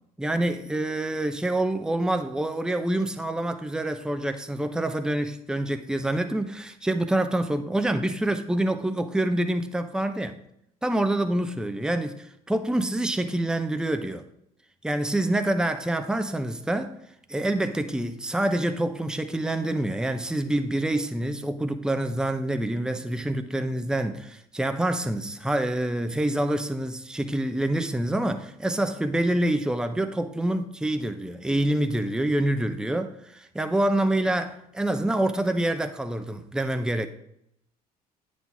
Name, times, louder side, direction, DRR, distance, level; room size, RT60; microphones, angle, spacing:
voice 1, 0.2-10.4 10.8-14.3 14.8-17.0 17.3-37.1, right 1 dB, 5° right, 0.8 m, -26 dB
9.4 x 4.1 x 6.0 m
hypercardioid pair, 60°, 20 cm